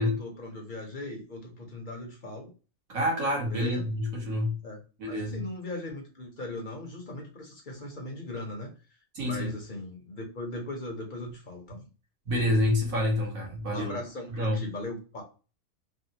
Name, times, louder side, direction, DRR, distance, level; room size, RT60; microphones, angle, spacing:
voice 1, 0.0-2.5 3.5-3.9 4.6-4.8 5.1-8.7 9.2-11.9 13.7-15.2, left 1 dB, 40° left, 0.8 m, -39 dB
voice 2, 2.9-4.6 5.0-5.4 9.1-9.5 12.3-14.0 14.3-14.6, left 1 dB, 70° right, 1.6 m, -28 dB
3.5 x 2.1 x 2.7 m
omnidirectional pair, 1.5 m